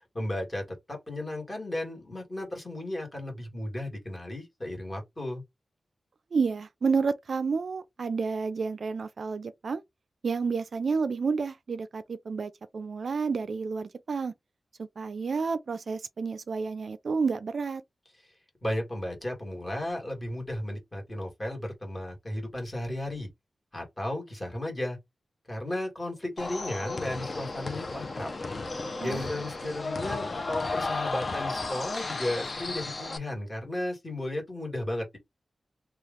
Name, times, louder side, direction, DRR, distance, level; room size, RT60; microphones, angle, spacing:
voice 1, 0.1-5.4 18.6-23.3 23.7-25.0 25.5-28.3 28.7-35.2, left 1 dB, 20° left, 1.7 m, -34 dB
voice 2, 6.3-9.8 10.2-14.3 14.8-17.8 29.0-29.2, right 5 dB, 60° right, 0.3 m, -30 dB
sound 1, 26.4-33.2, left 3 dB, 40° left, 0.6 m, -34 dB
3.1 x 2.3 x 3.5 m
wide cardioid pair, 155°, 0 cm